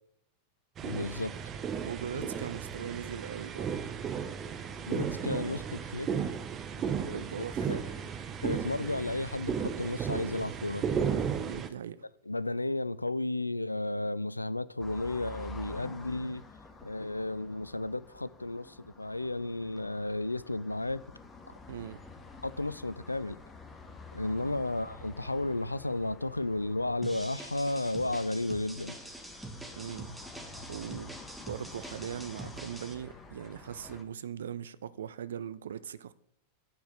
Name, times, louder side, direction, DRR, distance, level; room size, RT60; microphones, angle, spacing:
voice 1, 0.8-1.3 2.1-2.3 4.8-6.1 6.8-7.8 8.4-10.8 12.3-16.4 16.8-21.0 21.4-21.5 22.4-23.4 24.1-29.0, left 2 dB, 85° left, 0.3 m, -33 dB
sound 1, 0.8-11.7, right 7 dB, 25° right, 0.8 m, -34 dB
voice 2, 1.8-3.7 7.0-7.7 11.4-12.1 21.7-22.0 24.4-24.6 29.8-30.1 30.7-31.1 31.5-36.1, right 9 dB, 65° right, 0.5 m, -40 dB
sound 2, 14.8-34.0, left 3 dB, 15° left, 1.4 m, -50 dB
sound 3, 27.0-32.9, right 1 dB, ahead, 1.5 m, -45 dB
9.0 x 4.7 x 6.5 m
figure-of-eight pair, 90°, 0 cm